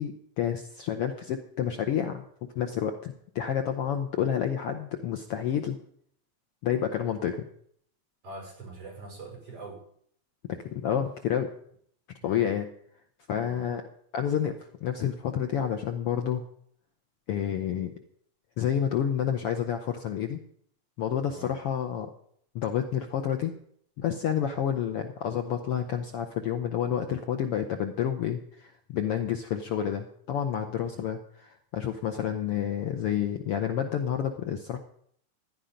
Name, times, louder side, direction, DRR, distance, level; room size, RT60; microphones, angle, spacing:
voice 1, 0.0-2.2 2.5-5.8 6.6-7.5 10.5-11.5 12.2-12.7 13.3-13.8 14.1-14.5 14.8-16.5 17.3-17.9 18.6-20.4 21.0-22.1 22.5-23.5 24.0-31.2 31.7-34.8, left 9 dB, 65° left, 6 dB, 1.6 m, -29 dB
voice 2, 8.2-9.8 12.2-12.5 13.3-13.7 21.3-21.6 30.9-31.1, right 2 dB, 50° right, 1 dB, 6.6 m, -44 dB
16.0 x 10.5 x 5.2 m, 0.65 s
omnidirectional pair, 3.3 m